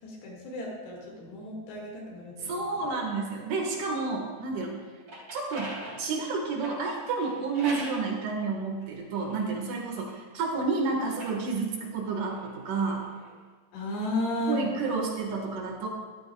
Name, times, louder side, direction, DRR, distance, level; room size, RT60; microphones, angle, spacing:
voice 1, 0.0-2.6 13.7-14.6, left 1 dB, 85° left, -3 dB, 4.2 m, -33 dB
voice 2, 2.4-4.8 5.3-13.1 14.5-15.9, right 4 dB, 60° right, 0 dB, 2.9 m, -30 dB
sound 1, 4.8-8.1 8.8-10.5 11.0-13.3, right 1 dB, 30° right, 3.6 m, -44 dB
14.5 x 12.5 x 2.3 m, 1.5 s
omnidirectional pair, 4.7 m